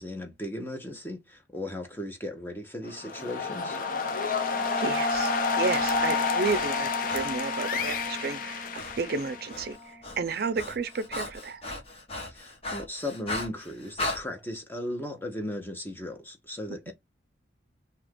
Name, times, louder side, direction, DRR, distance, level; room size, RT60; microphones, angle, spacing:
voice 1, 0.0-3.8 12.3-16.9, left 1 dB, 10° left, 0.7 m, -37 dB
sound 1, 2.9-9.7, left 4 dB, 50° left, 0.5 m, -30 dB
sound 2, 3.0-10.3, left 3 dB, 15° right, 0.9 m, -35 dB
voice 2, 4.8-11.6 16.9-17.0, right 4 dB, 55° right, 0.5 m, -32 dB
Breathing, 4.9-8.1 8.7-9.0 9.3-14.2, left 2 dB, 35° left, 1.0 m, -38 dB
2.8 x 2.4 x 3.5 m
head